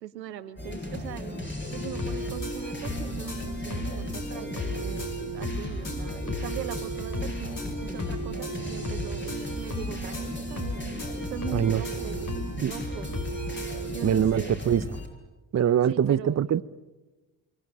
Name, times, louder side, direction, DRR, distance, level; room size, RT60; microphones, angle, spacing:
voice 1, 0.0-10.9 11.3-12.4 12.7-13.1 13.9-14.5 15.9-16.6, right 10 dB, 90° right, 1.0 m, -40 dB
sound 1, 0.6-15.1, left 1 dB, 20° left, 7.4 m, -36 dB
Cheap Flash Game Tune, 1.7-13.9, equal, 40° left, 6.0 m, -35 dB
voice 2, 14.0-14.8 15.5-16.6, right 9 dB, 35° right, 0.8 m, -23 dB
26.5 x 23.5 x 8.8 m
hypercardioid pair, 40°, 48 cm